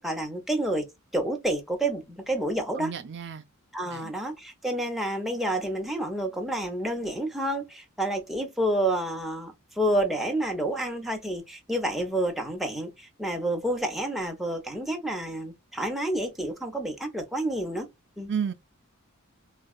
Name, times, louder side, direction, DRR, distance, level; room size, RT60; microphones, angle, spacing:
voice 1, 0.0-2.9 3.7-17.9 18.2-18.3, right 1 dB, ahead, 0.8 m, -29 dB
voice 2, 2.8-3.4 3.9-4.1 18.3-18.5, right 7 dB, 55° right, 0.5 m, -32 dB
4.0 x 2.3 x 2.3 m
head